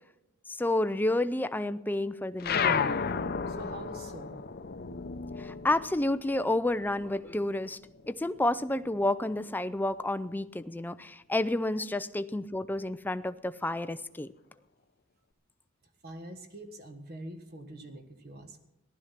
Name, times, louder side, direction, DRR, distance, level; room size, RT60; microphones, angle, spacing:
voice 1, 0.5-3.0 5.4-7.8 8.1-14.3, left 1 dB, 10° left, 12 dB, 0.4 m, -30 dB
sound 1, 2.4-7.3 7.6-9.0, left 6 dB, 45° left, 0.7 m, -33 dB
voice 2, 3.5-4.4 16.0-18.7, right 1 dB, 45° right, 7 dB, 1.5 m, -45 dB
15.5 x 12.0 x 5.8 m, 0.92 s
head